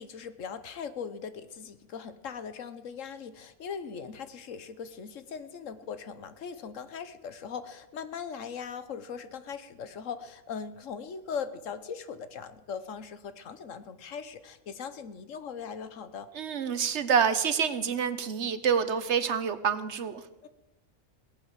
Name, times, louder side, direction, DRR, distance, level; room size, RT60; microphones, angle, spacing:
voice 1, 0.0-16.3 20.4-20.5, left 6 dB, 70° left, 11 dB, 1.3 m, -40 dB
voice 2, 16.3-20.2, right 7 dB, 60° right, 12 dB, 1.2 m, -27 dB
18.0 x 8.8 x 7.4 m, 0.98 s
omnidirectional pair, 1.4 m